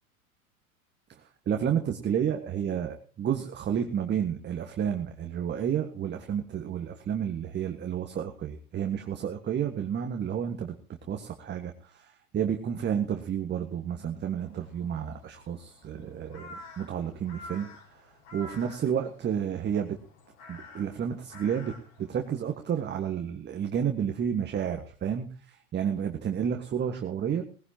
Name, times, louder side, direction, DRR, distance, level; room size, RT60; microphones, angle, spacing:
voice 1, 1.4-10.8 11.1-18.1 18.3-20.0 20.5-21.7 22.0-27.4, right 8 dB, 25° right, 4 dB, 1.6 m, -31 dB
Crow, 14.4-22.9, left 2 dB, 55° left, 6.6 m, -50 dB
19.0 x 16.0 x 2.9 m, 0.38 s
hypercardioid pair, 100°, 43 cm